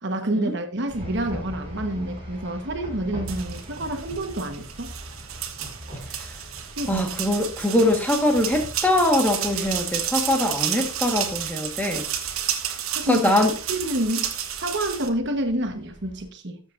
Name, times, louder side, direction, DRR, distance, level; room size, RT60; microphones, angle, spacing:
voice 1, 0.0-4.9 6.8-7.1 12.9-13.3 13.7-14.3 14.6-16.6, right 1 dB, 55° right, 1.3 m, -28 dB
sound 1, 0.9-16.3, equal, 30° right, 5.8 m, -42 dB
sound 2, 3.3-15.1, right 10 dB, 85° right, 1.2 m, -31 dB
voice 2, 6.9-12.1 13.1-13.5, left 1 dB, 10° left, 1.4 m, -22 dB
13.0 x 7.4 x 2.6 m
head